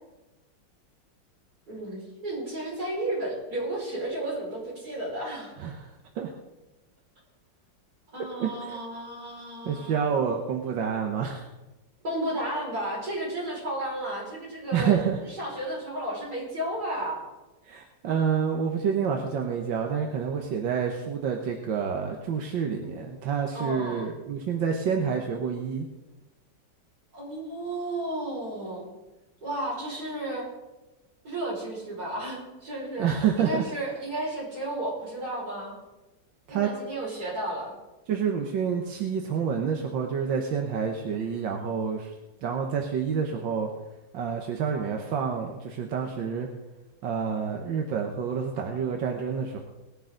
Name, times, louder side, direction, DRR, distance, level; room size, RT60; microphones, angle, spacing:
voice 1, 1.7-5.5 8.1-10.1 12.0-17.3 23.5-24.1 27.1-28.9 29.4-30.5 31.2-33.1 33.4-35.8 36.5-37.7, right 1 dB, 55° right, -5 dB, 6.0 m, -33 dB
voice 2, 8.4-8.8 9.7-11.5 14.7-15.2 17.6-25.9 33.0-33.6 36.5-36.7 38.1-42.1 42.4-43.7 44.1-46.5 47.0-49.6, right 7 dB, 90° right, 2 dB, 1.8 m, -28 dB
19.0 x 10.5 x 3.9 m, 1.1 s
omnidirectional pair, 2.0 m